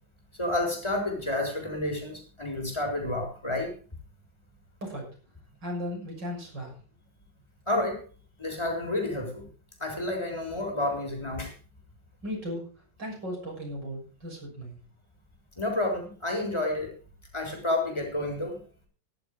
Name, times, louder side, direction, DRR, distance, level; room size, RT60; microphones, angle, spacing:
voice 1, 0.4-3.7 7.7-8.0 8.4-9.5 9.8-11.5 15.6-16.9 17.3-18.6, left 1 dB, 15° left, 3 dB, 4.1 m, -30 dB
voice 2, 5.6-6.7 12.2-12.7 13.0-14.8, left 1 dB, 70° right, -1 dB, 7.3 m, -36 dB
14.0 x 11.0 x 4.9 m, 0.37 s
omnidirectional pair, 2.0 m